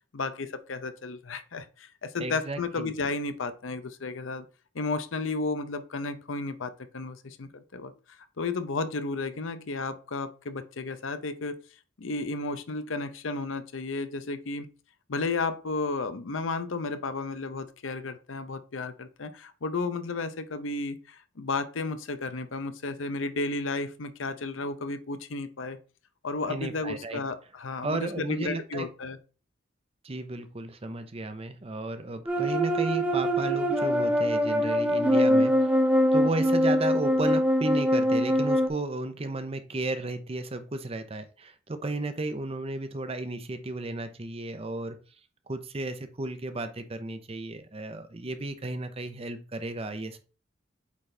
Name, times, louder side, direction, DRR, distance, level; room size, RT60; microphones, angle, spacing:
voice 1, 0.1-4.5 4.7-7.9 8.4-11.6 12.0-14.7 15.1-25.8 26.2-29.2, left 3 dB, 85° left, 11 dB, 0.7 m, -33 dB
voice 2, 2.2-2.9 26.5-27.2 27.8-28.9 30.0-35.5 36.1-45.0 45.5-50.2, right 2 dB, 30° right, 9 dB, 0.7 m, -34 dB
sound 1, 32.3-38.7, equal, 5° right, 1.0 m, -23 dB
8.4 x 4.0 x 3.3 m, 0.36 s
head